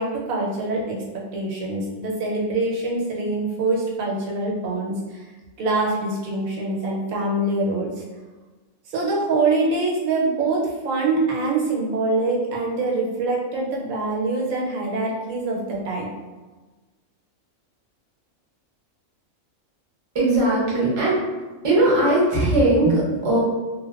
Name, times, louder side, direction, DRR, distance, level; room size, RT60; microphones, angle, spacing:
voice 1, 0.0-5.2 5.6-8.0 8.9-16.1, right 2 dB, 90° right, -2 dB, 1.1 m, -24 dB
voice 2, 20.1-21.2 21.6-23.4, right 1 dB, 30° right, -6 dB, 0.6 m, -19 dB
2.8 x 2.1 x 2.3 m, 1.2 s
omnidirectional pair, 1.4 m